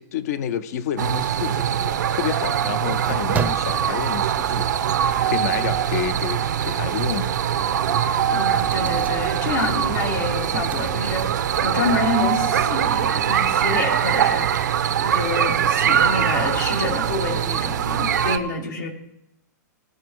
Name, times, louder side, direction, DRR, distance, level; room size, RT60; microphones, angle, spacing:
voice 1, 0.0-7.4, left 9 dB, 65° left, 0.8 m, -29 dB
sound 1, 1.0-18.4, right 9 dB, 85° right, 0.8 m, -22 dB
sound 2, 3.0-11.9, right 7 dB, 15° right, 0.6 m, -36 dB
voice 2, 8.3-18.9, left 3 dB, 85° left, 2.7 m, -27 dB
17.5 x 6.1 x 4.7 m
hypercardioid pair, 130°, 9 cm